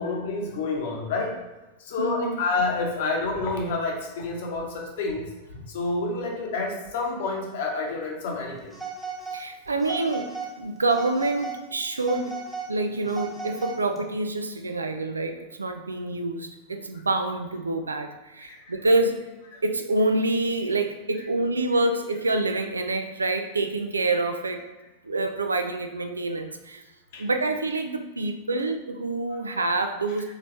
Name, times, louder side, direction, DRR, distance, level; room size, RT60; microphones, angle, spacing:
voice 1, 0.0-1.3 1.8-8.8 18.5-18.8 19.5-19.6 27.1-27.3, left 3 dB, 55° left, 1 dB, 1.0 m, -29 dB
voice 2, 2.0-2.4 9.3-12.3 12.7-19.3 19.6-24.6 25.0-26.8 27.2-30.3, right 2 dB, 75° right, 6 dB, 0.4 m, -27 dB
Telephone, 8.7-9.4 9.8-10.5 10.9-11.6 12.0-14.0, right 5 dB, 5° right, 1.1 m, -36 dB
4.0 x 4.0 x 3.2 m, 1.1 s
figure-of-eight pair, 90°, 0 cm